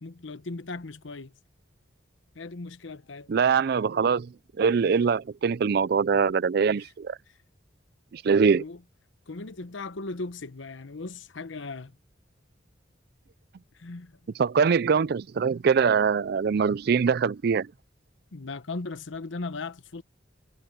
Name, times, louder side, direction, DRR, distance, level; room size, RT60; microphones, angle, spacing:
voice 1, 0.0-1.3 2.3-3.3 6.8-6.9 8.5-8.8 9.3-12.0 13.7-14.3 18.3-20.0, left 3 dB, 80° left, 0.9 m, -37 dB
voice 2, 3.3-7.2 8.1-8.6 14.4-17.7, right 6 dB, 55° right, 0.4 m, -23 dB
head